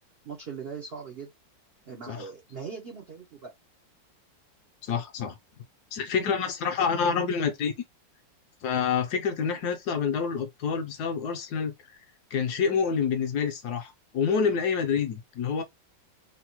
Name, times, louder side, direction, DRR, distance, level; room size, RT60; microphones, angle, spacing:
voice 1, 0.2-1.3 1.9-3.5, right 6 dB, 85° right, 0.5 m, -40 dB
voice 2, 4.8-5.4 5.9-7.7 8.6-11.7 12.3-15.6, left 6 dB, 70° left, 1.0 m, -27 dB
3.8 x 2.1 x 2.9 m
omnidirectional pair, 2.0 m